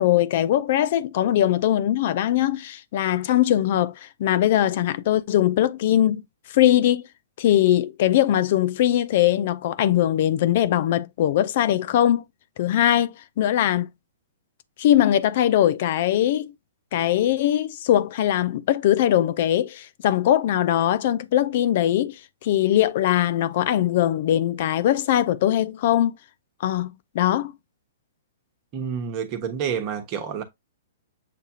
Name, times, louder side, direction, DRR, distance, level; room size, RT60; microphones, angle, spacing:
voice 1, 0.0-6.2 6.5-7.1 7.4-12.2 12.6-13.9 14.8-16.5 16.9-22.2 22.4-26.1 26.6-27.5, left 12 dB, 55° left, 0.4 m, -21 dB
voice 2, 28.7-30.4, right 7 dB, 35° right, 1.0 m, -28 dB
6.8 x 2.4 x 2.8 m
hypercardioid pair, 125°, 0 cm